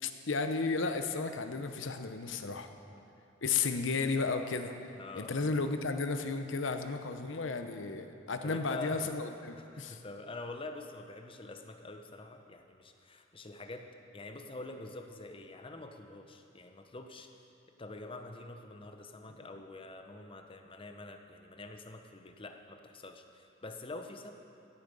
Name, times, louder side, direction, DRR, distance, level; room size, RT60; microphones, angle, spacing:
voice 1, 0.0-2.7 3.4-4.7 5.2-10.0, left 4 dB, 70° left, 7 dB, 0.8 m, -33 dB
voice 2, 2.6-3.0 4.9-5.8 8.4-9.1 9.6-13.9 14.1-17.3 17.8-24.3, left 2 dB, 30° left, 5 dB, 0.8 m, -46 dB
16.0 x 8.7 x 5.4 m, 2.6 s
head